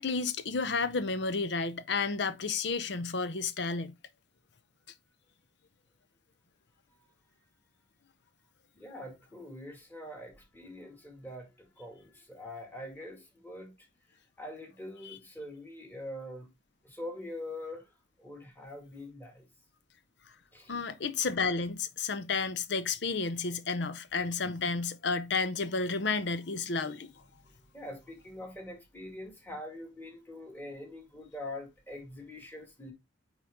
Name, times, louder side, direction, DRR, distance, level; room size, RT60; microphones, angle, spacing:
voice 1, 0.0-3.9 15.0-15.2 20.7-27.1, left 4 dB, 60° left, 0.7 m, -31 dB
voice 2, 8.7-16.5 16.8-17.9 18.2-19.5 20.5-20.7 27.4-32.9, left 1 dB, 10° left, 2.0 m, -44 dB
9.0 x 4.0 x 3.5 m
head